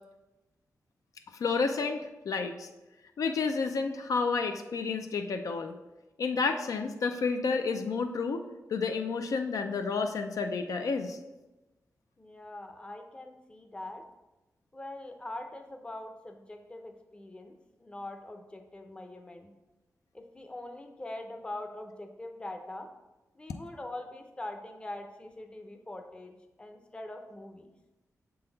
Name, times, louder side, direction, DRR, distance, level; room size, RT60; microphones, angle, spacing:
voice 1, 1.4-2.7 3.2-5.7 6.2-8.4 8.7-11.2, left 4 dB, 70° left, 6 dB, 0.4 m, -30 dB
voice 2, 12.2-14.0 14.7-19.5 20.1-22.9 23.3-27.7, left 1 dB, 15° left, 4 dB, 0.6 m, -43 dB
6.5 x 3.8 x 3.9 m, 1.1 s
wide cardioid pair, 120°, 6 cm